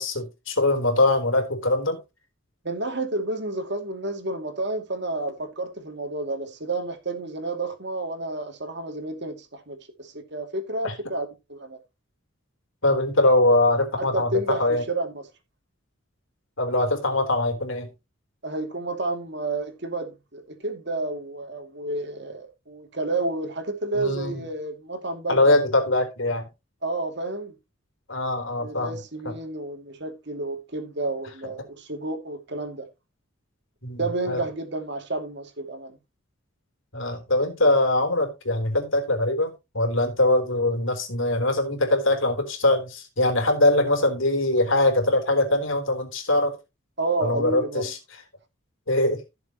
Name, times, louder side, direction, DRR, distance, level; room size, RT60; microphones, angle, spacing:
voice 1, 0.0-2.0 10.8-10.9 12.8-14.8 16.6-17.9 23.9-24.4 25.3-26.5 28.1-29.0 33.8-34.4 36.9-46.6 47.2-48.0 48.9-49.2, left 2 dB, 70° left, 3.6 m, -22 dB
voice 2, 2.6-11.8 14.0-15.2 18.4-25.6 26.8-27.6 28.6-32.9 34.0-36.0 47.0-47.9, right 2 dB, 55° right, 2.6 m, -30 dB
16.0 x 7.0 x 3.0 m
head